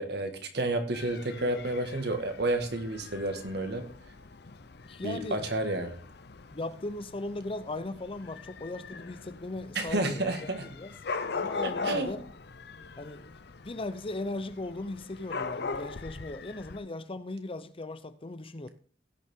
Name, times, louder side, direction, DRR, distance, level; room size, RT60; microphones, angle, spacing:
voice 1, 0.0-3.8 5.0-6.0 9.8-10.7 11.6-12.1, right 2 dB, 65° right, 1.8 m, -30 dB
Dog / Cat, 0.9-16.8, left 4 dB, 65° left, 0.8 m, -41 dB
voice 2, 4.8-5.5 6.5-10.9 11.3-12.2 13.0-13.4 13.6-18.7, left 2 dB, 30° left, 0.7 m, -38 dB
16.0 x 6.9 x 3.7 m
head